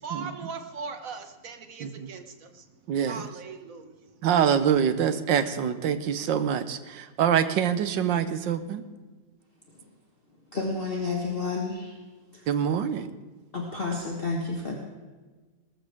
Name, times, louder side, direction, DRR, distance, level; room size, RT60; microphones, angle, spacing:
voice 1, 0.0-2.6 3.1-3.9, right 5 dB, 50° right, 7 dB, 1.6 m, -39 dB
voice 2, 2.9-3.3 4.2-8.9 12.5-13.1, right 8 dB, 85° right, 11 dB, 1.6 m, -25 dB
voice 3, 10.5-11.9 12.3-12.4 13.5-14.8, left 3 dB, 30° left, -1 dB, 1.7 m, -30 dB
19.5 x 13.5 x 3.6 m, 1.3 s
omnidirectional pair, 1.9 m